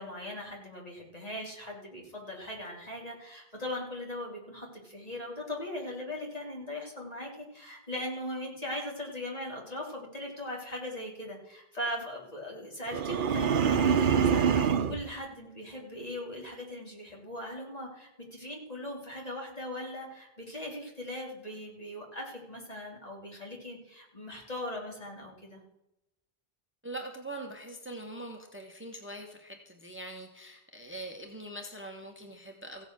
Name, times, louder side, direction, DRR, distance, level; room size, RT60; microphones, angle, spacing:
voice 1, 0.0-25.6, left 1 dB, 40° left, -2 dB, 3.4 m, -39 dB
sound 1, 12.9-15.0, right 7 dB, 60° right, 0.9 m, -25 dB
voice 2, 26.8-32.8, right 1 dB, 10° right, 3 dB, 1.3 m, -43 dB
15.5 x 8.1 x 6.2 m, 0.89 s
omnidirectional pair, 1.0 m